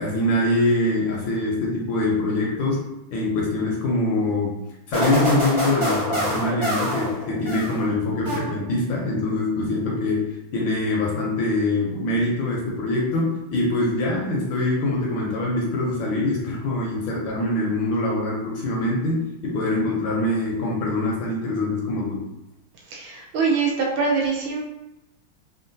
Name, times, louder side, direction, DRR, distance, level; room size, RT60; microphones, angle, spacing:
voice 1, 0.0-22.2, left 2 dB, 75° left, -2 dB, 1.2 m, -24 dB
sound 1, 4.9-7.9 8.3-8.9, equal, 30° right, 1.1 m, -26 dB
voice 2, 22.9-24.6, right 4 dB, 75° right, -1 dB, 1.3 m, -23 dB
3.6 x 2.2 x 2.5 m, 0.91 s
omnidirectional pair, 2.4 m